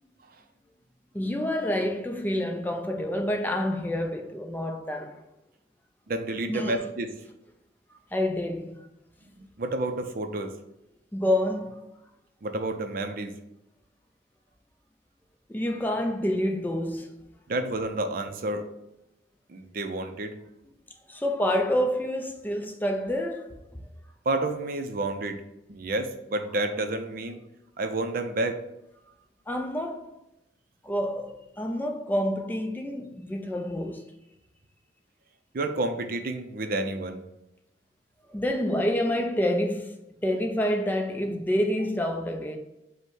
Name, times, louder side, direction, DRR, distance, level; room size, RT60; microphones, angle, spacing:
voice 1, 1.1-5.2 6.5-6.9 8.1-8.7 11.1-11.8 15.5-17.2 21.1-23.6 29.5-30.1 30.8-34.0 38.3-39.9 40.2-42.6, left 1 dB, 10° left, 0.4 m, -28 dB
voice 2, 6.1-7.1 9.4-10.5 12.4-13.3 17.5-18.7 19.5-20.4 24.3-25.4 25.7-27.4 27.8-28.6 35.5-37.2, right 2 dB, 55° right, 0.5 m, -30 dB
5.2 x 2.1 x 4.7 m
head